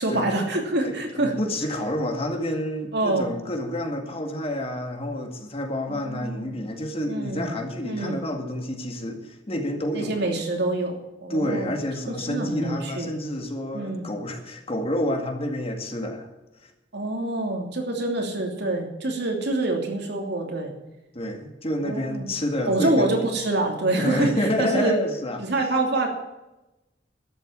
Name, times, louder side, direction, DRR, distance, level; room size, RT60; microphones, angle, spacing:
voice 1, 0.0-1.3 2.9-3.3 5.9-6.6 7.1-7.5 7.8-8.2 9.9-11.7 12.1-13.1 13.7-14.1 16.9-20.7 21.7-22.3 22.7-25.0 25.4-26.1, right 2 dB, 65° right, 2 dB, 2.9 m, -26 dB
voice 2, 0.8-10.3 11.3-16.3 16.6-16.7 21.1-23.2 23.9-25.4, left 1 dB, 35° left, 4 dB, 2.1 m, -29 dB
12.5 x 8.1 x 8.9 m, 0.99 s
head